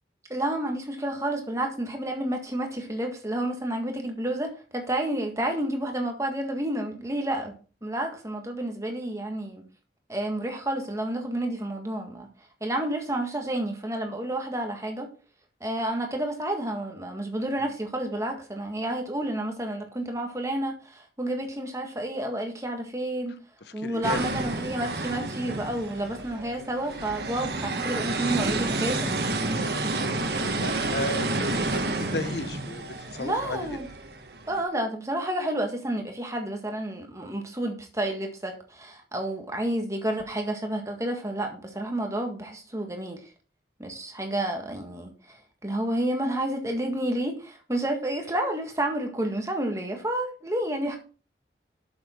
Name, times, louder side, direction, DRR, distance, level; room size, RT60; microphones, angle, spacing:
voice 1, 0.3-7.5 7.8-9.6 10.1-12.3 12.6-15.1 15.6-23.3 23.7-29.2 33.2-33.9 34.5-43.3 43.8-51.0, right 1 dB, 15° right, 1.7 m, -30 dB
voice 2, 23.6-24.3 30.6-33.8, left 2 dB, 70° left, 0.9 m, -35 dB
sound 1, 24.0-34.6, right 2 dB, 65° right, 1.4 m, -30 dB
8.1 x 7.2 x 4.5 m
head